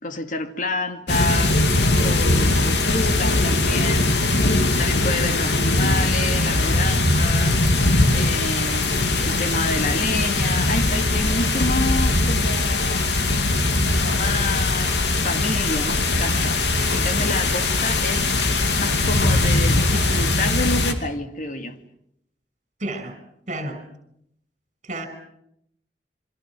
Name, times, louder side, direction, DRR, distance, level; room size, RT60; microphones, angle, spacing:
voice 1, 0.0-1.6 2.0-4.2 4.8-7.6 8.1-13.1 13.9-18.4 18.8-21.8, left 2 dB, 50° left, 7 dB, 2.3 m, -28 dB
sound 1, 1.1-20.9, left 2 dB, 75° left, 2.8 m, -20 dB
voice 2, 22.8-23.1 23.5-23.8 24.9-25.1, right 1 dB, 45° right, 9 dB, 5.9 m, -30 dB
29.0 x 25.0 x 6.2 m, 0.75 s
head